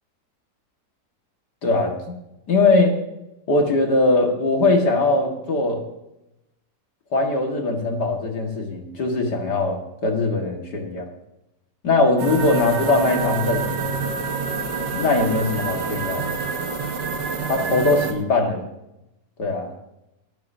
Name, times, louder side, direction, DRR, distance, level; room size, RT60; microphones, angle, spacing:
voice 1, 1.6-2.1 2.5-2.9 3.5-5.8 7.1-11.1 11.8-14.0 14.9-16.4 17.5-18.6 19.4-19.7, left 2 dB, 70° left, 2 dB, 2.5 m, -21 dB
sound 1, 12.2-18.1, right 5 dB, 75° right, 2.1 m, -27 dB
18.5 x 12.5 x 2.8 m, 0.90 s
omnidirectional pair, 1.9 m